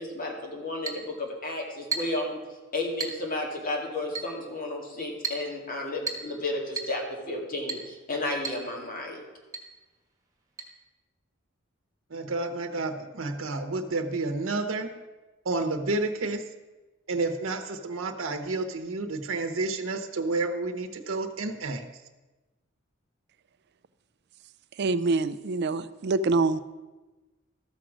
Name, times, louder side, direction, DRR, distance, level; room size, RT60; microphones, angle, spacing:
voice 1, 0.0-2.4 2.7-9.2, left 2 dB, 45° left, 1 dB, 2.2 m, -32 dB
Chink clink, 0.9-1.1 1.9-2.2 3.0-3.2 4.2-4.4 5.2-5.5 6.1-6.3 6.8-7.0 7.7-7.9 8.4-8.7 8.9-9.0 9.5-9.7 10.6-10.7, right 4 dB, 15° right, 1.7 m, -33 dB
voice 2, 12.1-14.9 15.4-16.5 17.1-21.8, right 3 dB, 75° right, 5 dB, 0.9 m, -30 dB
voice 3, 24.8-26.6, right 3 dB, 55° right, 14 dB, 0.4 m, -25 dB
13.5 x 6.2 x 6.2 m, 1.2 s
head